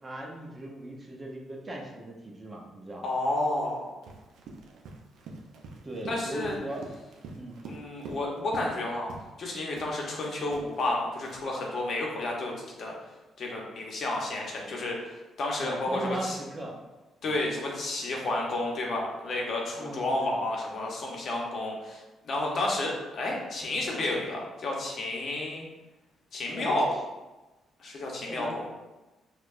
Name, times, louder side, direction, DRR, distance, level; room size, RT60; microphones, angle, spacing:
voice 1, 0.0-3.0 5.8-6.8 7.3-7.6 15.6-16.8 17.2-17.4 19.8-20.4 26.5-26.8 28.2-28.6, right 1 dB, 30° right, -1 dB, 0.7 m, -38 dB
voice 2, 3.0-3.9 6.1-6.6 7.7-9.1 9.4-12.9 13.4-16.4 17.2-25.7 26.3-26.9 27.8-28.7, left 2 dB, 55° left, -1 dB, 0.8 m, -31 dB
Run, 4.0-8.8 9.1-9.4 9.8-11.6, right 3 dB, 80° right, 0.5 m, -46 dB
4.5 x 2.3 x 2.5 m, 1.1 s
cardioid pair, 90°, 0 cm